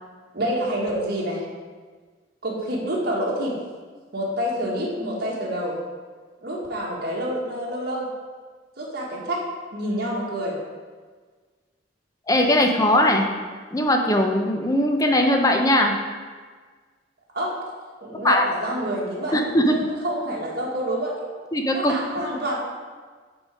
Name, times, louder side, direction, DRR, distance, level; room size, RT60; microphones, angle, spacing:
voice 1, 0.3-1.4 2.4-3.6 4.1-5.8 6.4-8.1 8.8-9.4 9.7-10.6 17.3-17.6 18.0-21.3 21.7-22.6, equal, 55° right, -4 dB, 1.7 m, -27 dB
voice 2, 12.3-13.3 13.7-15.9 18.2-18.4 19.3-19.7 21.5-21.9, left 1 dB, 20° left, 3 dB, 0.6 m, -19 dB
8.9 x 4.0 x 4.8 m, 1.5 s
head